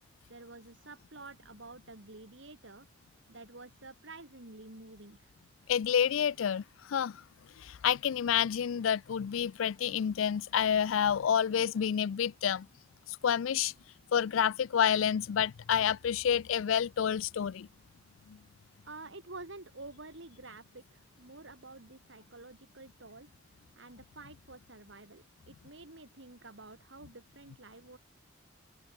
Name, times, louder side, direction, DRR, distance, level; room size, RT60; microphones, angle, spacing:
voice 1, 0.3-2.9 3.3-5.3 18.8-28.0, right 2 dB, 70° right, 3.1 m, -50 dB
voice 2, 5.7-6.6 6.9-7.2 7.6-12.7 13.2-13.7 14.1-17.7 18.3-18.4, left 8 dB, 90° left, 0.4 m, -29 dB
open air
head